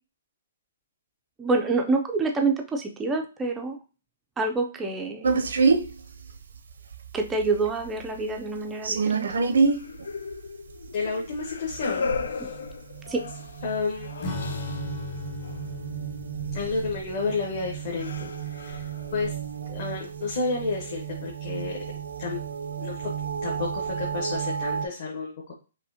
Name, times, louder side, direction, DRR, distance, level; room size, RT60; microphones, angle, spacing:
voice 1, 1.4-3.8 4.4-5.3 7.1-9.3 12.4-12.5 13.1-13.2, right 3 dB, 10° right, 3 dB, 0.3 m, -27 dB
sound 1, 5.2-24.9, right 5 dB, 80° right, 0.6 m, -30 dB
sound 2, 9.7-15.1 15.4-15.6 16.7-16.9 17.5-17.6 18.0-19.3, left 5 dB, 80° left, 0.4 m, -36 dB
voice 2, 10.9-12.5 13.6-14.5 16.5-19.4 19.7-21.8 22.2-22.4 22.8-23.0 23.4-25.5, left 4 dB, 45° left, -3 dB, 1.0 m, -31 dB
Acoustic guitar / Strum, 14.2-20.1, left 3 dB, 25° left, 0.7 m, -38 dB
5.2 x 2.7 x 2.7 m, 0.33 s
hypercardioid pair, 170°, 0 cm